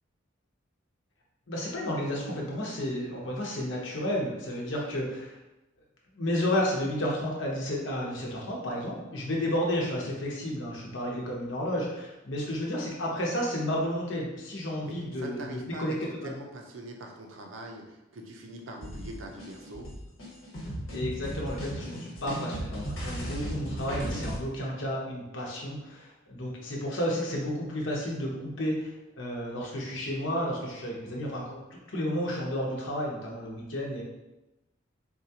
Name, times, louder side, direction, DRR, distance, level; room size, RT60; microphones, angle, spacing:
voice 1, 1.5-5.4 6.1-16.3 20.9-34.0, equal, 70° left, -2 dB, 0.9 m, -32 dB
voice 2, 14.8-19.9, right 1 dB, 75° right, 2 dB, 0.6 m, -43 dB
sound 1, 18.8-24.4, right 1 dB, 90° left, 1.3 m, -36 dB
4.2 x 2.3 x 2.8 m, 1.0 s
head